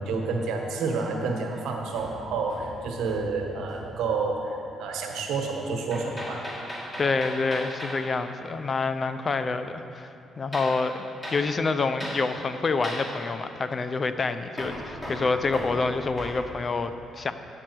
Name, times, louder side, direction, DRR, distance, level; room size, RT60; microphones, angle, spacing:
voice 1, 0.0-6.4, right 4 dB, 85° right, 2 dB, 1.2 m, -29 dB
Hammer, 1.9-3.4 3.7-4.0 5.9-8.0 10.5-10.8 11.2-11.5 12.0-12.2 12.8-13.1 14.6-16.4, equal, 20° left, 2.5 m, -37 dB
voice 2, 7.0-11.0 11.3-17.3, left 4 dB, 40° left, 10 dB, 0.5 m, -27 dB
9.8 x 7.7 x 4.6 m, 2.7 s
cardioid pair, 90°, 0 cm